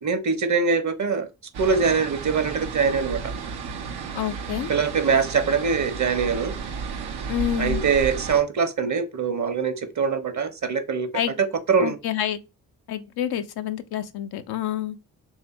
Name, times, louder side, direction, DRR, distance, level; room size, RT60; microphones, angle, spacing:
voice 1, 0.0-1.3 1.6-3.2 4.7-6.5 7.6-11.1 11.4-12.0, right 5 dB, 45° right, 1.0 m, -23 dB
sound 1, 1.5-8.4, right 5 dB, 75° right, 0.8 m, -33 dB
voice 2, 4.1-4.7 7.3-7.8 11.1-11.3 11.8-12.4 12.9-15.0, left 11 dB, 70° left, 0.6 m, -28 dB
3.3 x 2.8 x 4.2 m
supercardioid pair, 40°, 39 cm